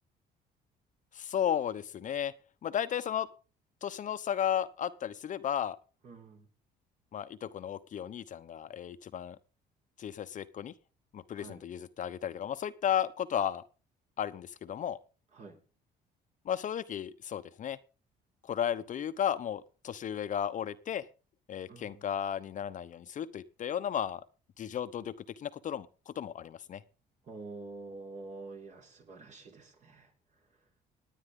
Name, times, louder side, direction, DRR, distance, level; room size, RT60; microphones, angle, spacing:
voice 1, 1.1-2.3 2.6-3.3 3.8-5.8 7.1-9.4 10.0-10.7 11.1-13.6 14.2-15.0 16.4-17.8 18.4-21.1 21.5-24.2 24.6-26.8, left 9 dB, 50° left, 11 dB, 0.9 m, -34 dB
voice 2, 6.0-6.5 11.3-11.6 15.3-15.6 21.7-22.1 27.3-30.1, right 3 dB, 45° right, 3 dB, 3.8 m, -47 dB
19.5 x 9.4 x 3.8 m, 0.34 s
cardioid pair, 110°, 17 cm